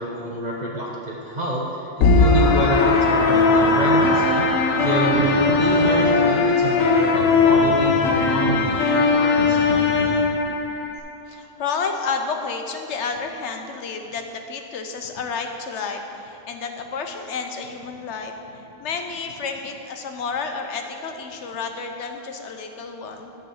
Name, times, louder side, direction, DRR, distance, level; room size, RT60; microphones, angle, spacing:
voice 1, 0.0-4.4 4.8-9.7, right 1 dB, 40° right, -4 dB, 0.9 m, -27 dB
sound 1, 2.0-11.0, left 4 dB, 85° left, 1.1 m, -19 dB
Hammer, 2.9-4.3 4.8-6.2 6.8-8.8 9.4-10.3, right 2 dB, 65° right, 1.3 m, -30 dB
voice 2, 11.3-23.3, left 5 dB, 65° left, 5 dB, 1.0 m, -30 dB
9.4 x 4.7 x 7.0 m, 2.8 s
omnidirectional pair, 1.3 m